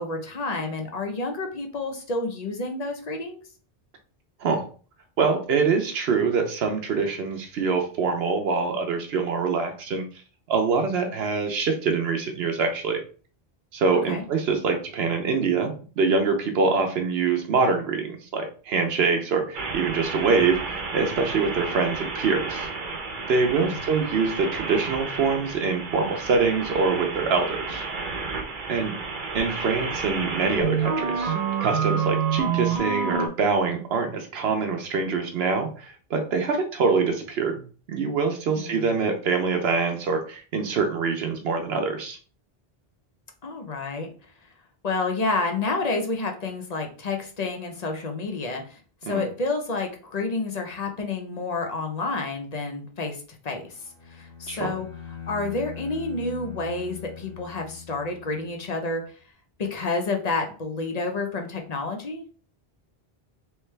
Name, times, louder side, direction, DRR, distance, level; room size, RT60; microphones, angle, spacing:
voice 1, 0.0-3.4 14.1-14.2 23.5-23.8 38.6-38.9 43.4-44.1 44.8-54.9 55.3-59.0 59.6-62.3, left 3 dB, 45° left, 3 dB, 0.7 m, -29 dB
voice 2, 5.2-10.0 10.5-13.0 13.7-22.7 23.3-27.8 28.7-29.0 29.3-31.3 31.6-42.2 49.1-49.2 54.5-54.7, right 4 dB, 85° right, 4 dB, 0.9 m, -24 dB
sound 1, 19.5-33.3, right 5 dB, 55° right, 0.8 m, -29 dB
Bowed string instrument, 53.7-58.5, left 7 dB, 70° left, 1.2 m, -41 dB
3.3 x 3.2 x 3.2 m, 0.39 s
omnidirectional pair, 1.0 m